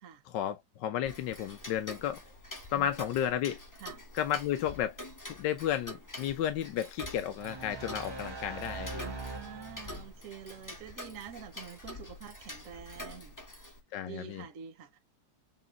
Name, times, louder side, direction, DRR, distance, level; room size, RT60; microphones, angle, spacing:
voice 1, 0.3-2.2 2.7-3.6 4.1-4.9 5.3-9.0 13.9-14.4, left 10 dB, 70° left, 1.3 m, -33 dB
Tick-tock, 1.0-13.8, left 1 dB, 20° left, 0.5 m, -46 dB
sound 1, 7.4-10.2, right 3 dB, 20° right, 0.7 m, -42 dB
voice 2, 9.0-13.4 14.0-15.0, right 8 dB, 55° right, 1.0 m, -47 dB
7.4 x 2.6 x 2.5 m
omnidirectional pair, 2.2 m